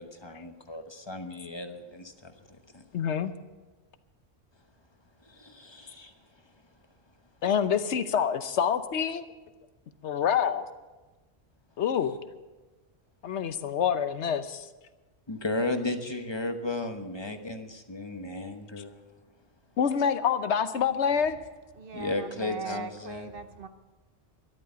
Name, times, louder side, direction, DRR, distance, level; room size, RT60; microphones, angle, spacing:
voice 1, 0.0-2.8 5.3-6.1 15.3-19.1 21.9-23.3, left 2 dB, 25° left, 6 dB, 1.1 m, -35 dB
voice 2, 2.9-3.3 7.4-9.2 10.0-10.6 11.8-12.2 13.2-14.7 18.8-18.9 19.8-21.4, left 7 dB, 85° left, 11 dB, 1.1 m, -26 dB
voice 3, 21.7-23.7, right 4 dB, 55° right, 9 dB, 1.0 m, -39 dB
13.0 x 11.5 x 6.9 m, 1.2 s
omnidirectional pair, 1.2 m